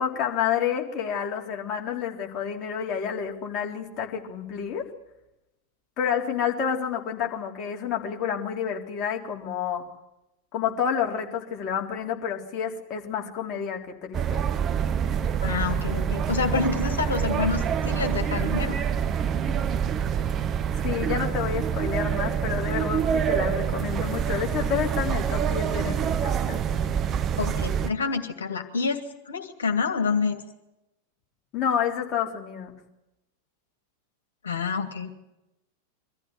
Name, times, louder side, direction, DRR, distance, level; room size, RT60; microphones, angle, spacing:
voice 1, 0.0-4.9 6.0-9.9 10.5-14.4 20.8-26.6 31.5-32.8, left 8 dB, 35° left, 1 dB, 3.8 m, -29 dB
sound 1, 14.1-27.9, right 8 dB, 30° right, 0.9 m, -26 dB
voice 2, 15.4-18.8 27.4-30.4 34.4-35.1, left 5 dB, 70° left, 6 dB, 2.6 m, -28 dB
24.0 x 14.5 x 9.8 m, 0.92 s
figure-of-eight pair, 90°, 0 cm